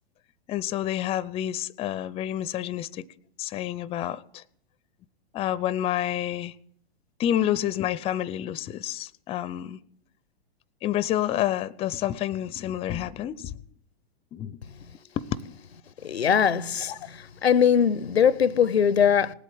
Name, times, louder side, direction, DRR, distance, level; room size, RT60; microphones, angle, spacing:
voice 1, 0.5-3.1 3.4-4.4 5.3-6.5 7.2-9.8 10.8-13.6 14.3-14.6 15.2-15.4 16.9-17.1, left 12 dB, 20° left, 0.5 m, -29 dB
voice 2, 16.0-16.9 17.4-19.3, left 8 dB, 85° left, 0.6 m, -21 dB
19.0 x 8.3 x 7.7 m
hypercardioid pair, 110°, 31 cm